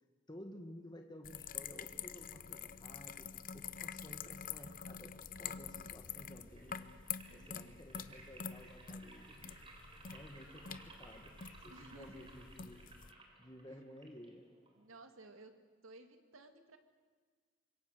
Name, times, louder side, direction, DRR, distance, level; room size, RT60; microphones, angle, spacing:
voice 1, 0.3-3.3 3.5-6.9 7.3-9.6 10.1-11.3 11.6-12.8 13.4-14.5, equal, 20° left, 3 dB, 1.7 m, -54 dB
sound 1, 1.2-13.1, left 8 dB, 45° left, 0.7 m, -47 dB
sound 2, 6.0-15.0, right 2 dB, 25° right, 3.6 m, -59 dB
voice 2, 7.3-7.9 11.7-12.3 13.7-13.8 14.8-15.5 15.8-16.8, right 2 dB, 85° right, 7 dB, 2.3 m, -57 dB
25.5 x 22.0 x 6.7 m, 1.6 s
head